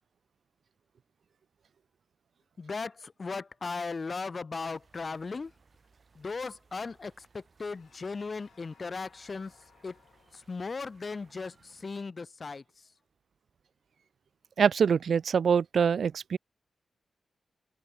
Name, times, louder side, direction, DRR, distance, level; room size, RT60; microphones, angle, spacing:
voice 1, 2.6-5.5 6.2-9.5 9.8-9.9 10.5-12.6, left 4 dB, 45° left, 1.2 m, -37 dB
sound 1, 4.6-12.0, right 4 dB, 55° right, 4.5 m, -65 dB
sound 2, 7.7-12.5, left 8 dB, 80° left, 4.8 m, -64 dB
voice 2, 14.6-16.4, right 6 dB, 70° right, 0.4 m, -24 dB
cardioid pair, 55°, 0 cm